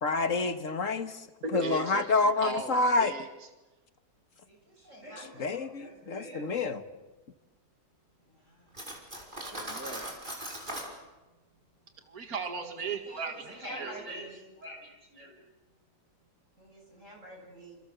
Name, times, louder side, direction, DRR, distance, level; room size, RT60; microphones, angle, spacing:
voice 1, 0.0-1.1 1.5-3.2 5.4-6.8, left 3 dB, 60° left, 9 dB, 1.9 m, -28 dB
voice 2, 1.1-3.5 9.4-10.0 12.1-14.0, right 4 dB, 70° right, 5 dB, 2.5 m, -38 dB
voice 3, 4.5-6.6 8.2-10.0 10.4-11.1 11.7-11.8 12.6-15.4 16.6-17.8, right 1 dB, 55° right, 0 dB, 7.7 m, -47 dB
Cutlery silverware, 8.7-10.9, right 1 dB, 35° right, 5.6 m, -39 dB
28.5 x 28.5 x 7.0 m, 1.1 s
omnidirectional pair, 1.6 m